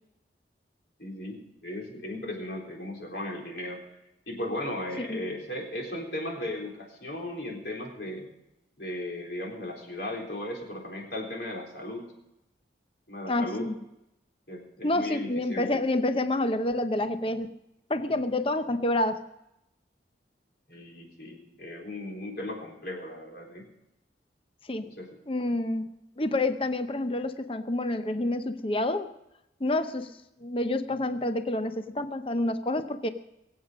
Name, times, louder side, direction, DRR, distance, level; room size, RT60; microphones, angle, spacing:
voice 1, 1.0-3.8 4.3-8.3 8.8-12.1 13.1-13.7 14.5-15.7 20.7-23.6 24.8-25.1, left 1 dB, 60° left, 0 dB, 3.9 m, -36 dB
voice 2, 13.3-13.8 14.8-17.5 17.9-19.2 24.7-24.9 25.3-25.8 26.2-29.1 29.6-30.1 30.4-33.1, left 1 dB, 30° left, 10 dB, 0.7 m, -28 dB
22.0 x 8.3 x 6.2 m, 0.87 s
head